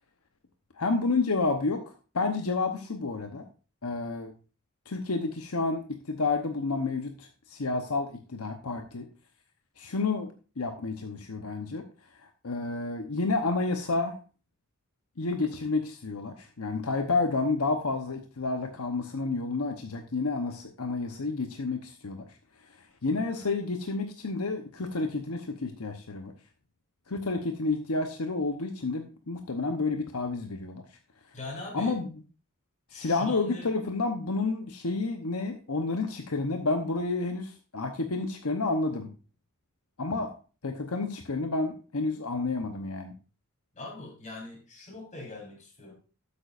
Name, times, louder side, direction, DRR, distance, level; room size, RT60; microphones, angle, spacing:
voice 1, 0.8-1.8 2.1-3.4 3.8-4.3 4.9-9.1 9.8-10.3 10.6-11.8 12.4-14.2 15.2-22.2 23.0-26.3 27.1-30.8 31.7-32.0 32.9-39.1 40.0-40.3 40.6-43.1, left 3 dB, 80° left, 5 dB, 1.0 m, -30 dB
voice 2, 31.3-32.0 32.9-33.7 43.7-45.9, left 2 dB, 35° left, -1 dB, 4.1 m, -41 dB
12.0 x 8.6 x 2.5 m, 0.34 s
head